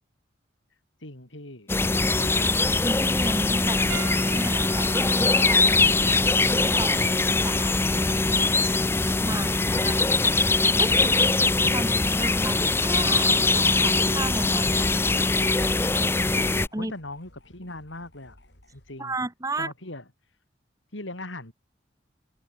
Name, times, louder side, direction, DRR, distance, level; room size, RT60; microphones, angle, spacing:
voice 1, 1.0-1.7 2.2-2.6 3.7-4.2 9.3-10.0 16.8-18.4 18.7-19.1 19.6-20.3 20.9-21.5, left 2 dB, 80° left, 5.4 m, -40 dB
sound 1, 1.7-16.7, left 3 dB, 10° left, 0.5 m, -22 dB
voice 2, 2.8-3.8 4.3-5.7 6.5-8.1 9.2-9.5 9.7-10.0 10.8-11.3 11.6-14.9 16.7-16.9 19.0-19.7, right 2 dB, 20° right, 1.6 m, -34 dB
Piano, 3.9-8.6 9.5-9.7 11.6-11.7, right 6 dB, 90° right, 7.6 m, -42 dB
sound 2, 15.9-19.0, left 2 dB, 60° left, 5.9 m, -51 dB
head